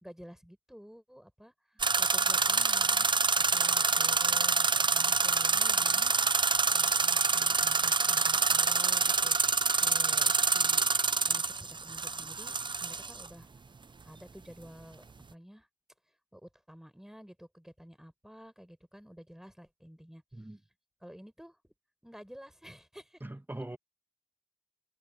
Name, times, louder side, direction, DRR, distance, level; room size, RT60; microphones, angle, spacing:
voice 1, 0.0-10.8 11.3-13.5 14.0-15.7 16.3-20.2 21.0-21.7 22.0-23.2, equal, 5° right, 5.0 m, -51 dB
sound 1, 1.8-13.3, right 4 dB, 80° right, 0.4 m, -27 dB
voice 2, 23.2-23.8, right 1 dB, 25° right, 1.3 m, -41 dB
wide cardioid pair, 45°, 8 cm